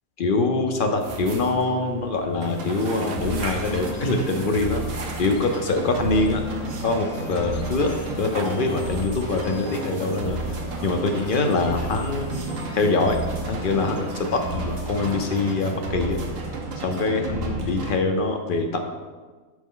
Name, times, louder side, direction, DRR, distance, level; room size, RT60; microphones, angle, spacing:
voice 1, 0.2-4.8 5.2-6.4 6.8-10.4 10.8-12.5 12.7-13.2 13.5-16.2 16.8-18.9, left 3 dB, 55° left, 4 dB, 0.6 m, -24 dB
sound 1, 0.8-16.9, right 3 dB, 60° right, 0.9 m, -43 dB
sound 2, 2.4-15.6, left 5 dB, 70° left, 1.0 m, -42 dB
sound 3, 2.4-17.9, right 3 dB, 80° right, 1.2 m, -32 dB
6.1 x 5.0 x 3.7 m, 1.4 s
omnidirectional pair, 1.4 m